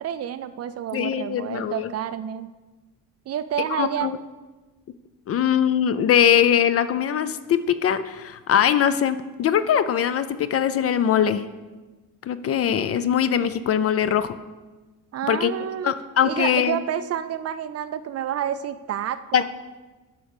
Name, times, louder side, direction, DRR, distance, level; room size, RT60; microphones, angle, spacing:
voice 1, 0.0-2.5 3.3-4.1 15.1-15.9 16.2-19.4, right 9 dB, 45° right, 12 dB, 0.4 m, -29 dB
voice 2, 0.9-1.9 3.7-4.1 5.3-11.5 12.2-14.4 15.3-15.5 15.8-16.8 19.3-19.4, left 9 dB, 40° left, 13 dB, 0.4 m, -21 dB
10.0 x 5.6 x 6.6 m, 1.2 s
cardioid pair, 165°, 37 cm